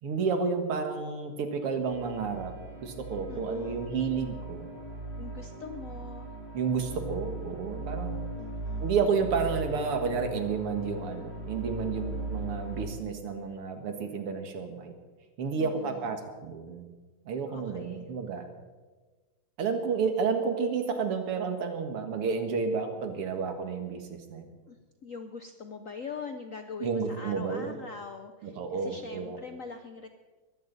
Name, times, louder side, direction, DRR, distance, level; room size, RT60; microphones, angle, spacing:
voice 1, 0.0-2.5 2.8-4.7 6.5-8.2 8.8-14.9 15.4-16.9 17.3-18.5 19.6-24.5 26.8-27.8 28.4-29.4, right 5 dB, 90° right, 6 dB, 2.6 m, -31 dB
sound 1, 1.9-12.9, right 2 dB, 25° right, 3.3 m, -38 dB
voice 2, 3.3-3.8 5.2-6.3 8.3-9.0 15.6-16.2 17.5-18.1 24.7-30.1, left 5 dB, 70° left, 7 dB, 0.7 m, -43 dB
21.5 x 15.5 x 4.1 m, 1.3 s
omnidirectional pair, 2.4 m